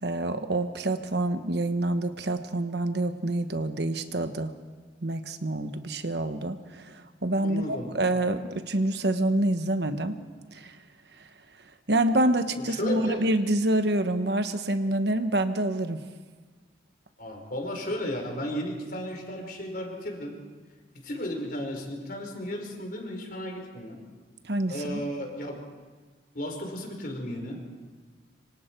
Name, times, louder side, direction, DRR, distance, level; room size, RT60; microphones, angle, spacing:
voice 1, 0.0-4.5 5.0-10.2 10.5-10.8 11.9-16.0 24.4-25.0, right 1 dB, 65° right, 8 dB, 1.2 m, -27 dB
voice 2, 7.4-7.9 12.7-13.2 17.2-20.4 21.0-24.0 24.7-25.6 26.3-27.6, equal, 50° left, 2 dB, 4.7 m, -34 dB
26.5 x 25.0 x 4.6 m, 1.4 s
head